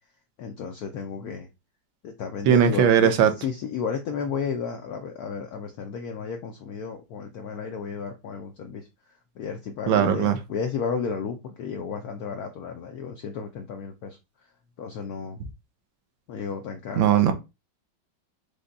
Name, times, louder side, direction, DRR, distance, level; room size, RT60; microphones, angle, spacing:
voice 1, 0.4-1.5 2.0-8.9 9.4-14.2 14.8-15.4 16.3-17.3, left 6 dB, 75° left, 0.8 m, -33 dB
voice 2, 2.5-3.3 9.9-10.4 17.0-17.3, right 8 dB, 80° right, 1.4 m, -19 dB
5.0 x 2.2 x 3.9 m
omnidirectional pair, 2.1 m